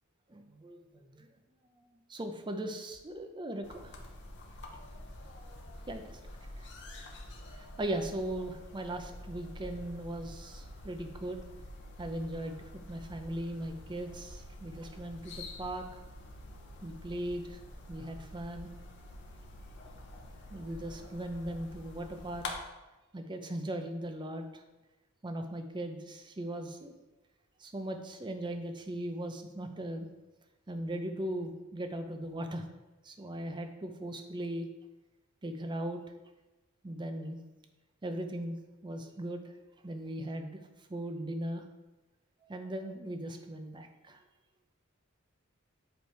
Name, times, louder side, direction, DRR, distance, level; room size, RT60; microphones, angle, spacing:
voice 1, 0.3-0.8 1.1-1.3 2.1-3.9 5.9-6.2 7.6-11.4 12.0-15.8 16.8-17.6 17.9-18.7 20.5-22.6 23.1-24.4 25.2-26.9 27.6-30.1 30.7-32.6 33.0-34.7 35.4-36.0 36.8-37.4 38.0-38.6 38.8-39.4 39.8-40.6 40.9-41.7 42.5-44.2, right 1 dB, 20° right, 6 dB, 0.5 m, -38 dB
sound 1, 3.6-22.5, left 1 dB, 55° left, 0.9 m, -47 dB
7.9 x 3.4 x 4.5 m, 1.1 s
head